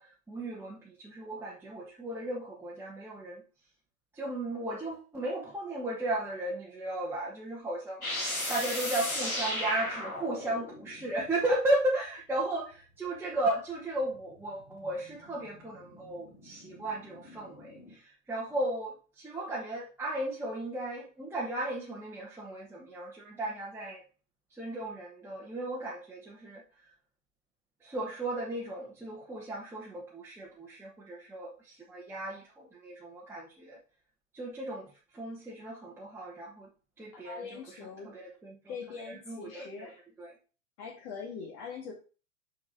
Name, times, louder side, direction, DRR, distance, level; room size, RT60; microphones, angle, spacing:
voice 1, 0.0-3.4 4.1-24.0 24.5-26.9 27.8-33.8 34.3-36.7 37.0-38.6 39.1-39.9 40.2-40.3, right 1 dB, 5° right, -5 dB, 1.2 m, -35 dB
sound 1, 8.0-11.4 14.1-17.9, left 1 dB, 90° left, 2.0 m, -37 dB
voice 2, 37.1-38.1 38.7-40.0 40.8-41.9, left 5 dB, 40° left, -1 dB, 1.8 m, -42 dB
6.1 x 6.1 x 3.9 m, 0.36 s
figure-of-eight pair, 100°, 41 cm